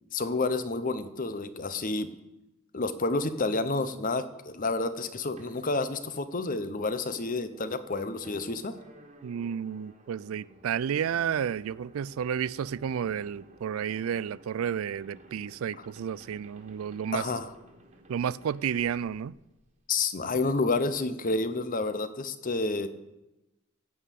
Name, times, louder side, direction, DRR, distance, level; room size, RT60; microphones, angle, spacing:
voice 1, 0.1-2.1 2.7-8.7 15.8-15.9 17.1-17.5 19.9-22.9, left 3 dB, 40° left, 0.8 m, -29 dB
sound 1, 5.4-19.9, right 1 dB, 30° right, 1.7 m, -55 dB
voice 2, 9.2-17.2 18.1-19.3, right 8 dB, 75° right, 0.3 m, -31 dB
15.0 x 5.6 x 8.3 m
head